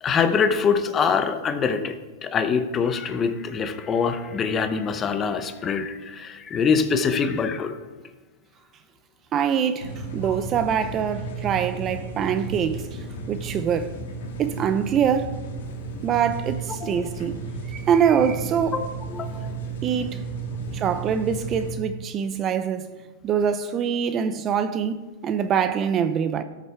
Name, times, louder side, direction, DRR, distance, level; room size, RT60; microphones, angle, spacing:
voice 1, 0.0-2.0 2.2-7.7 16.8-17.0 18.7-19.5 20.6-20.7, left 6 dB, 25° left, 0.8 m, -24 dB
voice 2, 9.3-14.0 14.4-15.4 16.0-17.4 17.7-18.8 19.8-20.2 20.7-22.9 23.2-26.4, right 8 dB, 30° right, 0.5 m, -24 dB
sound 1, 9.8-21.7, right 4 dB, 75° left, 1.8 m, -34 dB
13.0 x 6.7 x 4.5 m
supercardioid pair, 135°, 0 cm